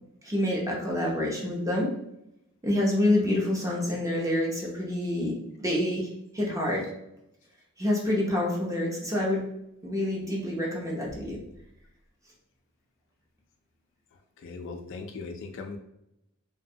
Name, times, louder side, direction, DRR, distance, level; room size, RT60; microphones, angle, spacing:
voice 1, 0.2-1.9 2.6-6.1 6.3-6.9 7.8-9.4 9.8-11.4, left 1 dB, 15° right, -3 dB, 0.6 m, -27 dB
voice 2, 14.1-15.8, left 4 dB, 60° left, 4 dB, 0.3 m, -39 dB
2.7 x 2.1 x 2.6 m, 0.82 s
head